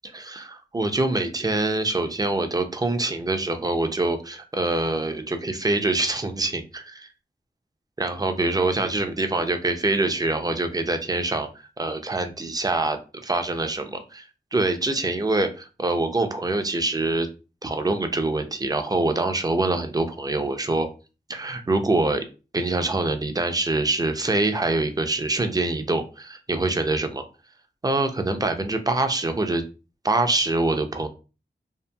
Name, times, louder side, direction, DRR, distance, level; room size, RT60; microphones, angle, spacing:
voice 1, 0.0-7.1 8.0-17.3 17.6-20.9 21.3-22.2 22.5-27.2 27.8-29.6 30.0-31.1, right 2 dB, 20° right, 7 dB, 0.4 m, -25 dB
2.7 x 2.5 x 2.2 m, 0.32 s
wide cardioid pair, 70°, 18 cm